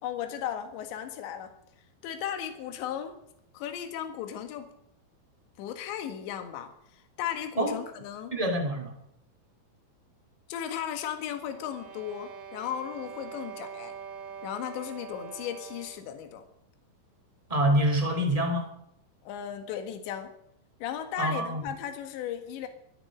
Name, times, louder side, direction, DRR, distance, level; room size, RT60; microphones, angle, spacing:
voice 1, 0.0-1.5 2.0-3.2 3.5-4.7 5.6-8.3 10.5-13.9 14.4-16.4 19.2-20.3 20.8-22.7, left 10 dB, 75° left, 6 dB, 3.9 m, -36 dB
voice 2, 8.3-8.9 17.5-18.7 21.2-21.7, right 1 dB, 10° right, 4 dB, 1.7 m, -26 dB
sound 1, 11.4-16.1, right 6 dB, 75° right, 4.3 m, -44 dB
20.5 x 14.0 x 5.2 m, 0.75 s
omnidirectional pair, 5.3 m